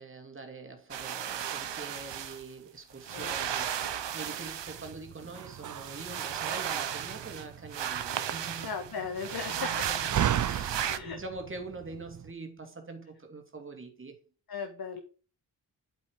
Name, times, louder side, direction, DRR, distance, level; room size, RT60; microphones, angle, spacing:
voice 1, 0.0-8.7 9.5-14.2, right 3 dB, 30° right, 2.4 m, -44 dB
sound 1, 0.9-2.5 3.0-4.9 5.3-7.5 7.7-11.0, right 9 dB, 80° right, 1.0 m, -35 dB
voice 2, 3.1-3.5 8.6-9.9 10.9-11.2 14.5-15.0, left 5 dB, 55° left, 1.6 m, -37 dB
Slam, 4.7-12.3, right 10 dB, 45° right, 0.4 m, -36 dB
11.5 x 8.5 x 4.7 m
wide cardioid pair, 175°, 42 cm